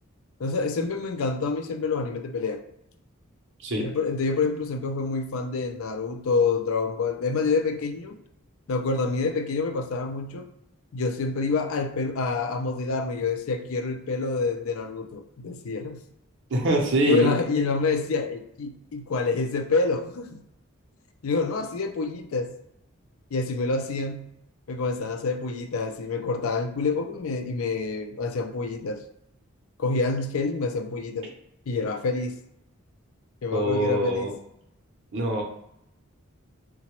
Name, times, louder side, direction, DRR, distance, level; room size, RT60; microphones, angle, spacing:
voice 1, 0.4-2.6 3.8-8.2 8.7-10.5 10.9-16.0 17.0-20.4 21.2-22.5 23.3-24.2 24.7-29.0 29.8-31.3 31.7-32.4 33.4-34.3, left 4 dB, 80° left, 0.4 m, -27 dB
voice 2, 16.5-17.3 33.5-34.3 35.1-35.4, right 1 dB, 60° right, 0.7 m, -24 dB
3.8 x 2.2 x 2.9 m
head